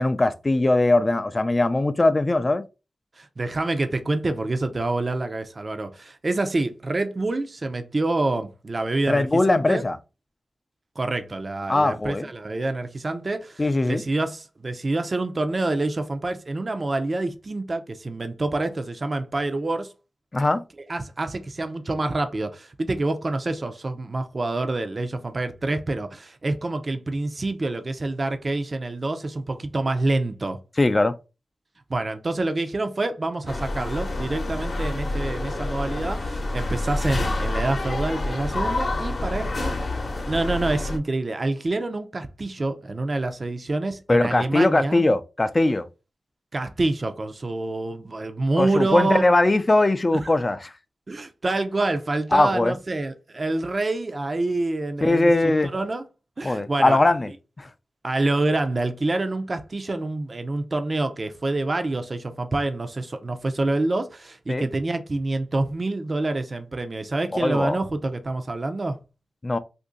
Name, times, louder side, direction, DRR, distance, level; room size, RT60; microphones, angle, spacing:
voice 1, 0.0-2.6 9.1-10.0 11.7-12.3 13.6-14.0 20.3-20.6 30.8-31.1 44.1-45.8 48.6-50.7 52.3-52.7 55.0-55.7 56.4-57.3 57.6-57.7 64.5-64.7 67.3-67.8 69.4-69.6, left 2 dB, 35° left, 0.4 m, -20 dB
voice 2, 3.2-9.8 11.0-19.9 20.9-30.6 31.9-39.7 40.2-45.0 46.5-49.3 50.1-50.3 51.1-56.0 56.4-57.0 58.0-69.0, right 2 dB, 45° right, 0.5 m, -27 dB
sound 1, 33.5-41.0, left 2 dB, 55° left, 0.8 m, -28 dB
2.6 x 2.6 x 3.8 m
cardioid pair, 55°, 0 cm